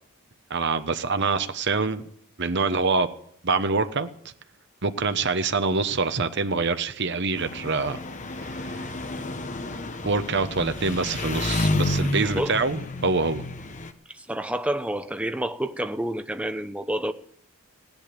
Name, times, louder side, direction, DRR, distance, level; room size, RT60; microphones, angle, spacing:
voice 1, 0.5-2.1 2.4-3.1 3.4-4.1 4.8-8.0 10.0-13.4, right 4 dB, 50° right, 1.0 m, -25 dB
Engine, 7.3-13.9, left 2 dB, 35° left, 1.0 m, -30 dB
voice 2, 12.2-12.6 14.1-17.1, right 1 dB, 5° right, 0.7 m, -29 dB
16.5 x 10.5 x 6.8 m
head